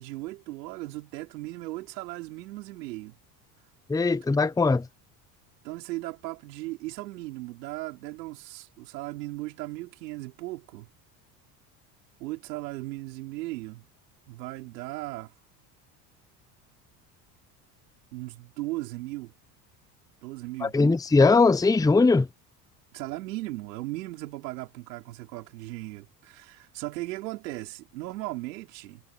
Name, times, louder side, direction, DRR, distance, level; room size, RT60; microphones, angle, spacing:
voice 1, 0.0-3.1 5.6-10.9 12.2-13.8 14.3-15.3 18.1-19.3 20.2-21.0 22.9-29.0, right 19 dB, 80° right, 4.4 m, -37 dB
voice 2, 3.9-4.9 20.6-22.3, left 3 dB, 5° left, 0.8 m, -20 dB
hypercardioid pair, 75°, 49 cm